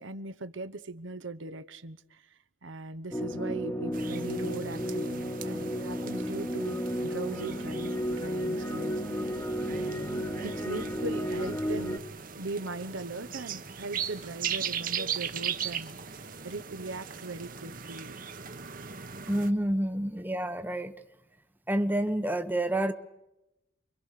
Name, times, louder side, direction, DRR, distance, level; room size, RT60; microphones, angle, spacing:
voice 1, 0.0-9.3 9.7-12.0 12.3-18.2, right 2 dB, 65° right, 12 dB, 1.1 m, -40 dB
sound 1, 3.1-12.0, equal, 15° left, 1.5 m, -33 dB
sound 2, 3.9-19.5, right 7 dB, 40° right, 1.3 m, -39 dB
voice 2, 19.3-20.9 21.7-22.9, right 1 dB, 10° right, 8 dB, 1.0 m, -28 dB
29.0 x 23.5 x 6.7 m, 0.92 s
head